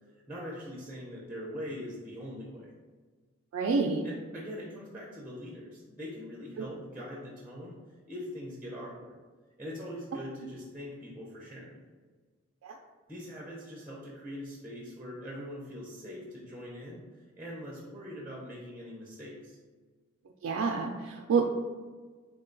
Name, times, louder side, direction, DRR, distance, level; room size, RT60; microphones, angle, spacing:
voice 1, 0.3-2.7 4.0-7.7 8.1-9.1 9.6-11.7 13.1-19.6, equal, 10° right, -4 dB, 0.5 m, -42 dB
voice 2, 3.5-4.0 6.6-6.7 12.6-12.7 20.4-21.5, right 5 dB, 75° right, 1 dB, 0.3 m, -28 dB
3.7 x 2.2 x 3.8 m, 1.4 s
head